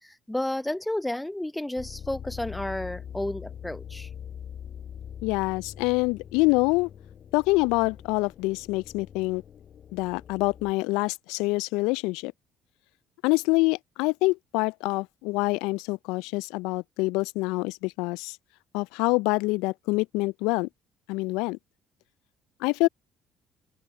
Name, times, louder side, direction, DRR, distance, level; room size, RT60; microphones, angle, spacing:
voice 1, 0.0-4.1, left 1 dB, 10° left, 1.1 m, -32 dB
sound 1, 1.8-10.7, left 8 dB, 50° left, 6.5 m, -43 dB
voice 2, 5.2-6.9 7.3-9.4 9.9-12.3 13.2-18.4 18.7-20.7 21.1-21.6 22.6-22.9, left 24 dB, 70° left, 0.5 m, -26 dB
open air
hypercardioid pair, 55°, 0 cm